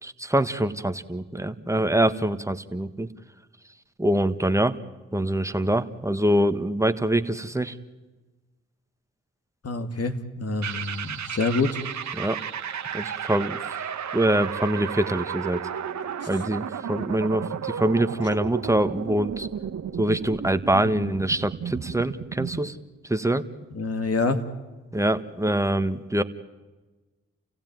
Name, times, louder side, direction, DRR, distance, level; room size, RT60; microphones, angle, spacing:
voice 1, 0.0-3.1 4.0-4.7 5.1-7.8 12.2-12.4 12.9-13.8 14.1-15.6 16.3-19.5 20.0-22.8 23.1-23.4 24.9-26.2, right 1 dB, 10° right, 10 dB, 1.6 m, -24 dB
voice 2, 9.6-11.8 16.2-16.3 23.7-24.4, left 3 dB, 55° left, 7 dB, 2.4 m, -26 dB
sound 1, 10.6-22.7, right 8 dB, 70° right, 1.4 m, -33 dB
29.0 x 16.0 x 9.4 m, 1.2 s
supercardioid pair, 40°, 30 cm